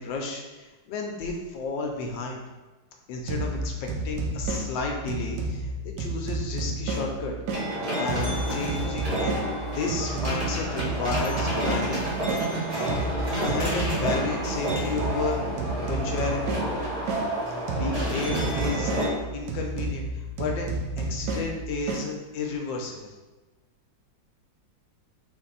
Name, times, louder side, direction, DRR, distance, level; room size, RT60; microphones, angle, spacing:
voice 1, 0.0-2.4 3.1-7.3 7.7-9.5 9.7-12.0 13.4-15.4 15.9-16.6 17.7-20.7 21.0-23.1, left 3 dB, 85° left, 1 dB, 1.4 m, -32 dB
sound 1, 3.3-7.7 8.1-12.5 12.9-17.3 17.7-22.1, right 2 dB, 70° right, 1.1 m, -31 dB
sound 2, 7.5-19.1, right 1 dB, 30° right, 0.7 m, -30 dB
4.2 x 2.6 x 4.0 m, 1.2 s
omnidirectional pair, 2.0 m